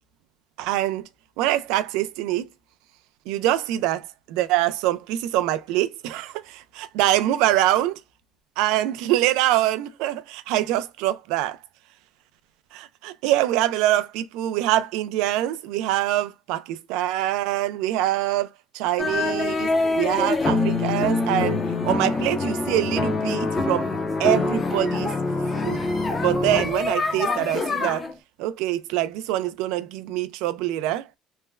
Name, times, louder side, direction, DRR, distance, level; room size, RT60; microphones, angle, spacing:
voice 1, 0.6-1.1 1.4-2.5 3.3-8.0 8.6-11.6 12.7-18.5 18.7-23.9 24.2-25.1 25.6-25.8 26.2-28.1 28.4-31.1, right 14 dB, 85° right, 0.3 m, -24 dB
sound 1, 19.0-28.1, left 3 dB, 20° left, 0.5 m, -25 dB
3.2 x 2.0 x 2.2 m
cardioid pair, 130°, 0 cm